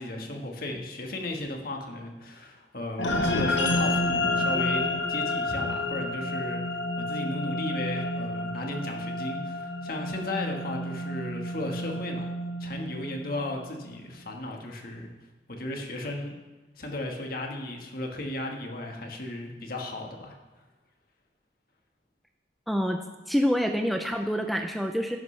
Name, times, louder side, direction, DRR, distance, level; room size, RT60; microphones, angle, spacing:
voice 1, 0.0-6.6 7.0-12.3 12.6-15.1 15.5-16.3 16.8-20.4, left 1 dB, 50° left, 2 dB, 1.5 m, -35 dB
sound 1, 3.0-13.6, left 2 dB, 80° left, 1.2 m, -30 dB
voice 2, 22.7-23.0 23.3-25.2, equal, ahead, 4 dB, 0.5 m, -26 dB
11.0 x 10.5 x 3.3 m, 1.2 s
head